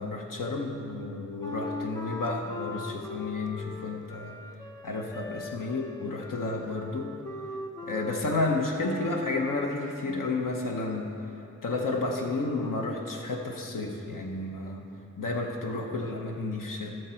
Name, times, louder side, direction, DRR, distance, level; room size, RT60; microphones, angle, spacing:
voice 1, 0.0-4.4 4.8-7.1 7.8-11.1 11.6-14.8 15.2-16.9, left 3 dB, 85° left, 1 dB, 1.0 m, -31 dB
Wind instrument woodwind instrument, 1.4-9.8, left 2 dB, 10° left, 0.7 m, -40 dB
17.0 x 6.6 x 4.4 m, 2.8 s
wide cardioid pair, 120°, 32 cm